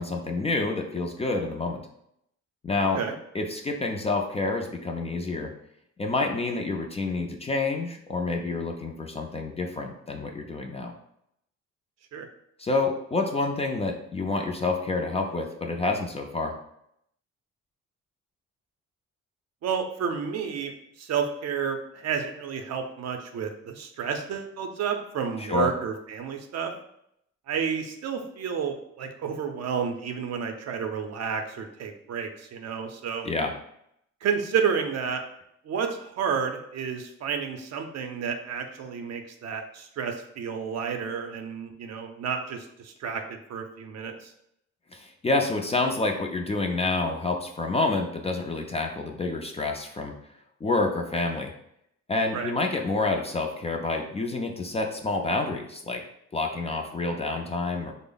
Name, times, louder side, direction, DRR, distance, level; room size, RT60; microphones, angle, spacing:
voice 1, 0.0-1.8 2.6-3.0 3.3-5.5 6.0-10.9 12.6-16.5 25.4-25.7 33.2-33.5 44.9-50.1 50.6-51.5 52.1-56.0 56.3-57.9, left 3 dB, 20° left, 2 dB, 0.4 m, -28 dB
voice 2, 19.6-20.7 21.0-26.7 27.5-33.3 34.2-35.2 35.6-44.3 52.3-52.5, right 6 dB, 60° right, 5 dB, 0.5 m, -31 dB
3.3 x 2.0 x 3.8 m, 0.75 s
cardioid pair, 90°, 30 cm